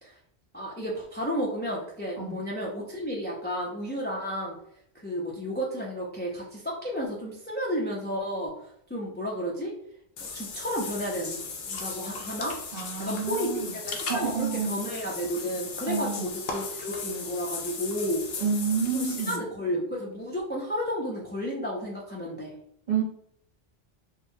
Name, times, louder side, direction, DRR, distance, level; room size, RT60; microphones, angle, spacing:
voice 1, 0.5-4.6 4.9-9.7 10.2-12.6 13.0-18.2 18.9-22.5, equal, 20° left, -3 dB, 0.3 m, -32 dB
Water / Bathtub (filling or washing), 10.2-19.4, left 4 dB, 60° left, 0.6 m, -37 dB
voice 2, 12.7-13.7 14.1-14.8 15.9-16.3 18.4-19.3 22.9-23.0, right 6 dB, 50° right, -2 dB, 0.8 m, -29 dB
3.6 x 2.0 x 2.6 m, 0.71 s
omnidirectional pair, 1.0 m